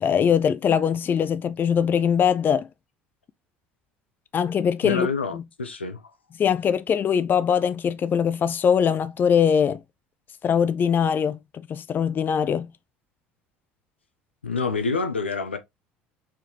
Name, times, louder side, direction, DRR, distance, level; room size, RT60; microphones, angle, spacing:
voice 1, 0.0-2.7 4.3-5.1 5.3-5.4 6.4-9.8 10.4-11.4 11.7-12.7, left 7 dB, 35° left, 0.4 m, -22 dB
voice 2, 4.8-6.1 14.4-15.6, left 4 dB, 90° left, 0.7 m, -27 dB
4.5 x 3.7 x 2.9 m
figure-of-eight pair, 65°, 6 cm